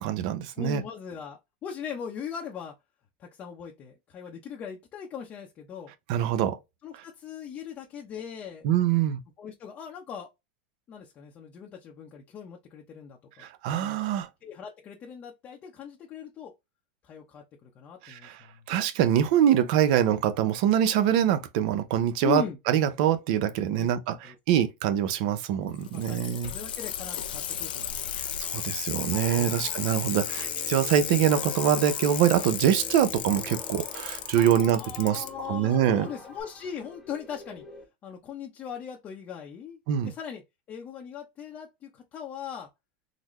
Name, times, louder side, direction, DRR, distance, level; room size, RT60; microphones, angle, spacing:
voice 1, 0.0-0.8 6.1-6.6 8.6-9.2 13.6-14.3 18.0-18.4 18.7-24.1 24.5-26.5 28.4-36.1 39.9-40.1, right 10 dB, 60° right, 0.7 m, -24 dB
voice 2, 0.6-2.8 3.2-5.9 6.8-8.6 9.4-10.3 10.9-13.4 13.7-14.0 14.4-16.5 17.0-18.6 22.2-22.6 23.8-23.9 24.2-24.4 25.9-28.0 29.3-29.7 34.4-37.6 38.0-40.4 40.7-42.7, left 8 dB, 35° left, 0.7 m, -39 dB
Bicycle, 25.7-35.3 36.4-36.5, left 9 dB, 90° left, 0.6 m, -34 dB
sound 1, 29.1-37.8, left 1 dB, ahead, 1.1 m, -45 dB
3.9 x 2.1 x 3.1 m
supercardioid pair, 125°, 5 cm